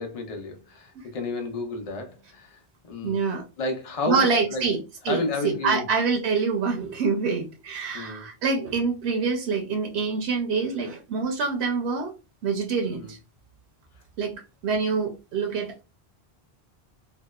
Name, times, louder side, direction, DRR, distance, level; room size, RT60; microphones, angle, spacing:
voice 1, 0.0-2.6 2.8-3.2 3.6-4.6 5.1-5.8 7.9-8.3 12.9-13.1, left 2 dB, 45° left, 0.6 m, -31 dB
voice 2, 3.0-3.4 4.1-4.8 5.0-5.2 5.4-12.1 12.4-13.2 14.2-15.8, right 5 dB, 90° right, 0.8 m, -26 dB
2.7 x 2.1 x 2.2 m
omnidirectional pair, 1.1 m